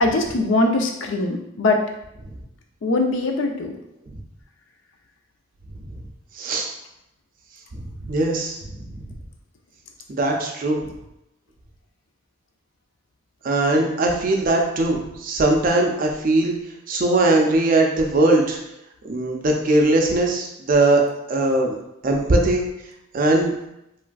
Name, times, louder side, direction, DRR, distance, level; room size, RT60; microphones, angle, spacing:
voice 1, 0.0-1.8 2.8-3.7, left 2 dB, 70° left, 3 dB, 0.4 m, -21 dB
voice 2, 6.3-6.7 7.7-8.6 10.1-10.8 13.4-16.5 16.9-18.6 19.0-21.0 21.3-21.7 22.0-22.6 23.1-23.5, right 2 dB, 45° right, 1 dB, 0.4 m, -20 dB
3.1 x 2.5 x 2.2 m, 0.84 s
head